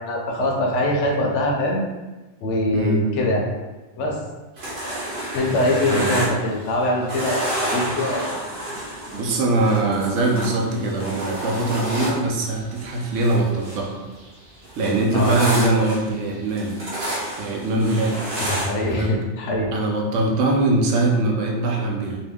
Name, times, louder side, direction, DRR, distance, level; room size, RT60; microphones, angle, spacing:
voice 1, 0.0-1.8 2.4-3.5 4.0-4.2 5.3-8.4 15.1-15.4 18.4-19.7, left 1 dB, 75° left, -1 dB, 0.9 m, -23 dB
voice 2, 2.7-3.0 5.9-6.1 9.1-13.9 14.8-16.8 17.4-18.2 18.9-19.1 19.7-22.2, right 2 dB, 75° right, 0 dB, 0.9 m, -22 dB
sound 1, 4.6-6.8 7.1-13.9 14.2-19.1, right 1 dB, 50° right, 0.9 m, -30 dB
2.7 x 2.3 x 3.4 m, 1.2 s
omnidirectional pair, 1.3 m